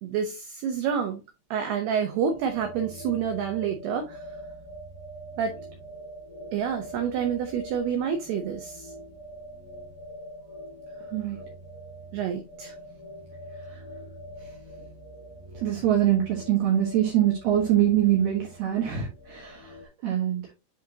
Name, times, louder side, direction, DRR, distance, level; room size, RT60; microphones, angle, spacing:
voice 1, 0.0-1.2 1.5-4.2 5.4-5.6 6.5-8.9 12.1-12.7, right 7 dB, 90° right, 2.2 m, -28 dB
sound 1, 2.2-19.9, right 1 dB, 60° left, 2.1 m, -43 dB
voice 2, 15.6-19.8 20.0-20.4, right 11 dB, 65° right, 2.9 m, -24 dB
9.9 x 4.1 x 2.8 m
omnidirectional pair, 5.9 m